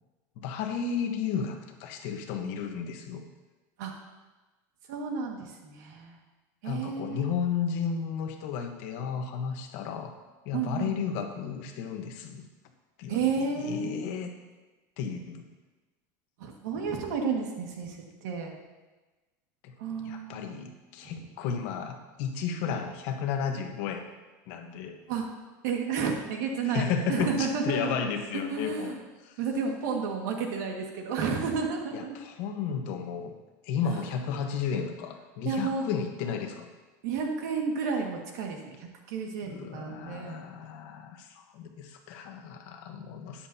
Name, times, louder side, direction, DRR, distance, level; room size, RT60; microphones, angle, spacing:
voice 1, 0.4-3.2 6.6-10.1 10.4-12.4 13.0-13.2 13.6-14.3 15.0-15.5 19.6-19.7 20.0-24.1 24.5-25.0 26.7-28.9 29.3-29.4 31.9-33.3 33.6-36.7 39.5-43.5, left 6 dB, 55° left, 5 dB, 1.2 m, -33 dB
voice 2, 4.9-6.2 6.6-7.3 10.5-11.1 13.1-14.0 16.4-18.5 19.8-20.5 21.0-21.2 25.1-25.3 25.6-28.0 28.3-29.0 29.4-32.2 35.4-35.9 37.0-40.5, right 5 dB, 80° right, 1 dB, 1.9 m, -31 dB
12.5 x 9.9 x 2.9 m, 1.2 s
cardioid pair, 175°, 9 cm